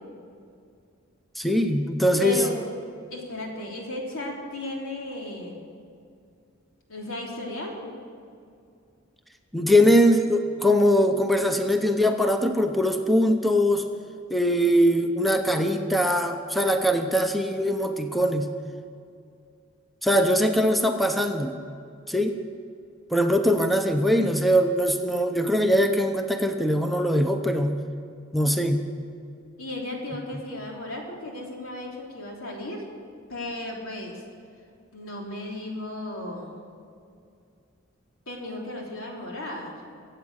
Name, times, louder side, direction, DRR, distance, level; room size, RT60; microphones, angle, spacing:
voice 1, 1.4-2.4 9.5-13.9 14.3-18.5 20.0-21.6 22.1-22.4 23.1-27.8 28.3-28.8, equal, ahead, 5 dB, 0.7 m, -22 dB
voice 2, 2.2-2.5 3.1-5.7 6.9-7.9 29.6-32.8 33.3-34.2 34.9-36.6 38.3-39.8, left 1 dB, 80° left, -2 dB, 3.6 m, -35 dB
24.5 x 8.3 x 6.5 m, 2.4 s
head